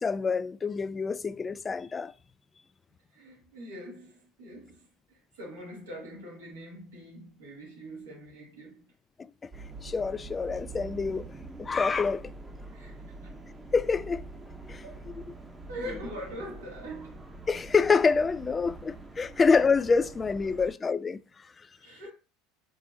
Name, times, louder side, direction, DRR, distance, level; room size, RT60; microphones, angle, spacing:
voice 1, 0.0-2.1 9.4-9.5 9.8-11.3 11.6-12.3 13.7-14.2 14.7-14.8 17.5-21.2, left 5 dB, 25° left, 0.3 m, -26 dB
voice 2, 3.1-8.9 12.7-13.4 14.8-15.1 15.7-17.3 20.6-20.8 21.8-22.1, equal, 80° right, 2.2 m, -43 dB
sound 1, 9.5-20.7, right 3 dB, 15° right, 0.8 m, -45 dB
5.0 x 3.9 x 2.7 m
hypercardioid pair, 75°, 0 cm